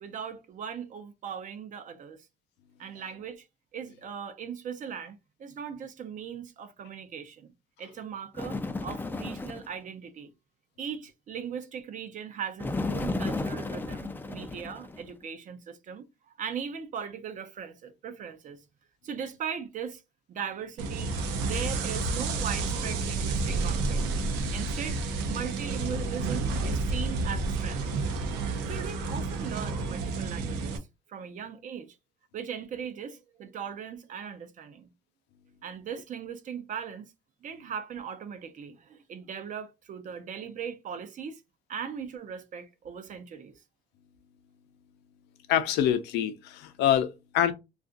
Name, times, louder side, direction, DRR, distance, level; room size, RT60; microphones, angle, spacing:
voice 1, 0.0-2.3 2.8-3.5 3.7-7.5 7.8-10.3 10.8-16.0 16.4-18.6 19.0-20.0 20.3-24.0 24.5-27.8 28.7-30.8 31.1-32.0 32.3-34.9 35.6-37.1 37.4-41.4 41.7-43.6, right 7 dB, 50° right, 0.7 m, -39 dB
Bird, 8.3-9.7 12.6-15.1, left 3 dB, 10° left, 0.4 m, -33 dB
sound 1, 20.8-30.8, right 3 dB, 85° right, 0.7 m, -30 dB
voice 2, 45.5-47.5, left 10 dB, 90° left, 0.6 m, -25 dB
2.4 x 2.4 x 3.8 m
cardioid pair, 110°, 17 cm